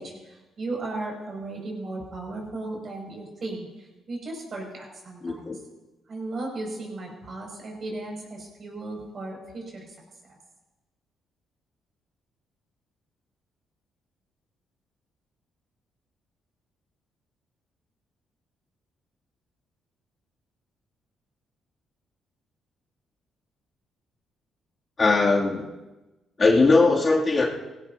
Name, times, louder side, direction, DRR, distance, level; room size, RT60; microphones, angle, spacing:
voice 1, 0.0-5.6 6.1-9.9 10.2-10.4, right 2 dB, 50° right, 0 dB, 6.4 m, -36 dB
voice 2, 5.2-5.6 25.0-25.6 26.4-27.5, left 3 dB, 35° left, -3 dB, 2.7 m, -19 dB
19.5 x 17.0 x 2.8 m, 1.1 s
cardioid pair, 90°, 0 cm